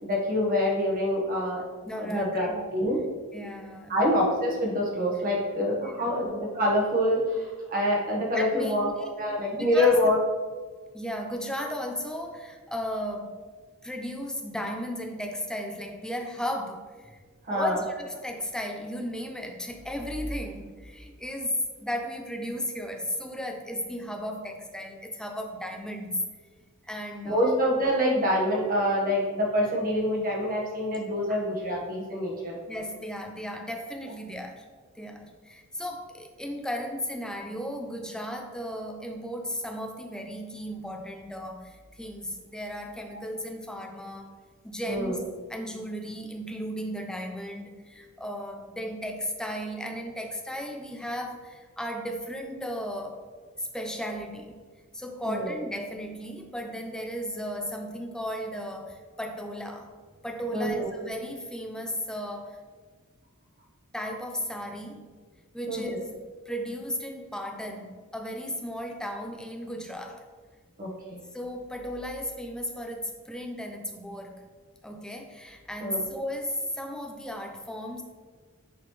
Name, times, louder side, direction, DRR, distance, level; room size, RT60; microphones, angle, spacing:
voice 1, 0.0-1.6 2.0-3.0 3.9-8.9 9.2-10.2 17.5-17.8 27.2-32.6 44.9-45.2 55.2-55.5 60.5-60.9 65.7-66.0 70.8-71.2 75.8-76.0, left 1 dB, 40° right, -4 dB, 1.3 m, -26 dB
voice 2, 1.8-2.6 3.3-4.0 5.7-6.3 8.3-8.9 9.5-10.0 10.9-13.3 13.8-17.2 17.5-26.2 26.9-27.6 31.3-31.4 32.7-34.7 35.0-44.3 44.6-45.2 45.5-53.2 53.6-54.6 54.9-59.9 60.2-62.6 63.9-65.1 65.5-66.2 66.5-70.2 71.3-74.4 74.8-78.0, equal, 5° left, 3 dB, 0.5 m, -35 dB
8.5 x 4.1 x 3.1 m, 1.5 s
head